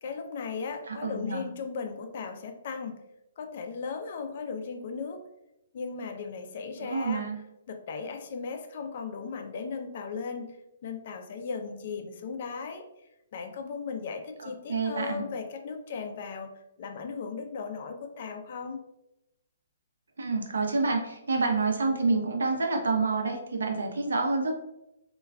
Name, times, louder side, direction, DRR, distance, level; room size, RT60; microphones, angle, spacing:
voice 1, 0.0-3.0 3.4-5.2 5.7-7.2 7.7-10.6 10.8-12.9 13.3-16.5 16.8-18.8, left 5 dB, 45° left, 6 dB, 0.4 m, -37 dB
voice 2, 0.9-1.5 6.8-7.4 14.4-15.2 20.2-24.5, right 3 dB, 90° right, 2 dB, 0.6 m, -28 dB
2.2 x 2.2 x 3.4 m, 0.87 s
hypercardioid pair, 160°, 0 cm